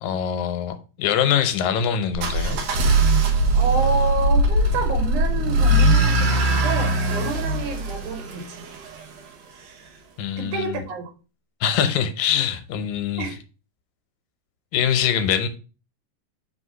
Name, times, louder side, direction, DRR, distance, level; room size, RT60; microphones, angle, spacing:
voice 1, 0.0-2.6 10.2-10.8 11.6-13.3 14.7-15.5, left 8 dB, 80° left, 2.1 m, -23 dB
sound 1, 2.1-9.0, right 1 dB, 65° right, 1.9 m, -20 dB
voice 2, 3.5-8.7 10.4-11.1 13.2-13.4, right 3 dB, 85° right, 2.7 m, -28 dB
4.9 x 3.5 x 5.5 m
omnidirectional pair, 3.4 m